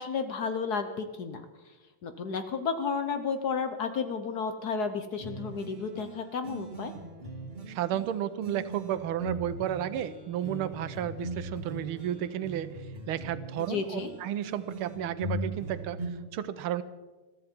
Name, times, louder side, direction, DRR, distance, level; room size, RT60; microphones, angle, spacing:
voice 1, 0.0-1.4 2.0-6.9 13.7-14.1, left 5 dB, 60° left, 8 dB, 1.2 m, -32 dB
sound 1, 5.2-16.1, right 2 dB, 25° right, 2.5 m, -40 dB
voice 2, 7.7-12.7 13.1-16.0 16.3-16.8, right 11 dB, 80° right, 13 dB, 1.6 m, -32 dB
21.5 x 14.0 x 4.5 m, 1.2 s
omnidirectional pair, 2.4 m